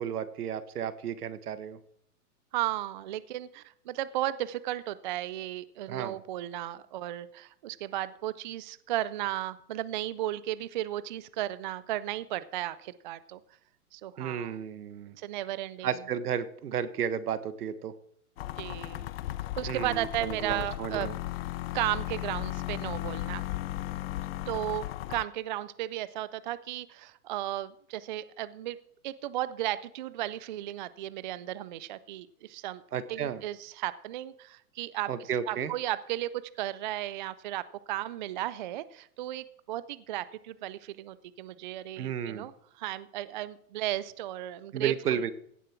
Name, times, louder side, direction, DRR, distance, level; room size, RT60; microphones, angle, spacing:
voice 1, 0.0-1.8 5.9-6.2 14.2-15.1 15.8-17.9 19.7-21.2 32.9-33.4 35.1-35.7 42.0-42.5 44.7-45.3, right 8 dB, 80° right, 13 dB, 1.4 m, -33 dB
voice 2, 2.5-13.4 13.9-14.6 15.2-15.9 18.6-19.1 19.6-21.1 21.7-23.4 24.5-24.8 25.1-28.8 29.0-32.8 33.1-36.3 36.6-42.5 42.8-45.3, right 14 dB, 35° right, 16 dB, 0.4 m, -35 dB
sound 1, 18.4-25.2, left 16 dB, 45° left, 0.5 m, -36 dB
16.5 x 7.5 x 4.4 m, 0.67 s
hypercardioid pair, 135°, 45 cm